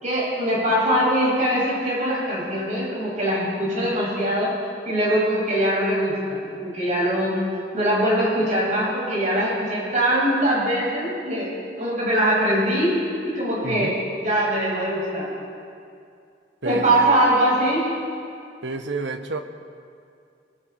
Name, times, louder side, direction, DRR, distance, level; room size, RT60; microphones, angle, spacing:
voice 1, 0.0-4.5 4.8-7.4 7.7-11.5 11.8-15.3 16.6-17.9, right 1 dB, 45° right, -5 dB, 7.2 m, -22 dB
voice 2, 13.6-14.0 16.6-17.1 18.6-19.4, right 2 dB, 90° right, 7 dB, 1.3 m, -29 dB
25.5 x 21.5 x 4.9 m, 2.4 s
head